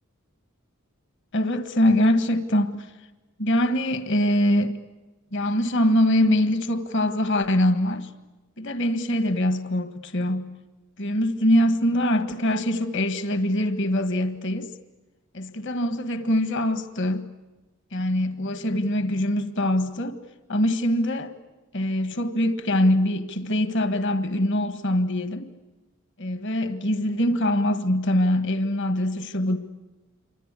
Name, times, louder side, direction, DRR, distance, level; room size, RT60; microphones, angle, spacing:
voice 1, 1.3-2.9 3.4-4.8 5.3-8.1 8.6-10.5 11.0-14.7 15.3-17.3 17.9-20.2 20.5-21.3 21.7-25.5 26.2-29.6, left 1 dB, 55° left, 1.7 m, -23 dB
28.0 x 25.5 x 8.3 m
head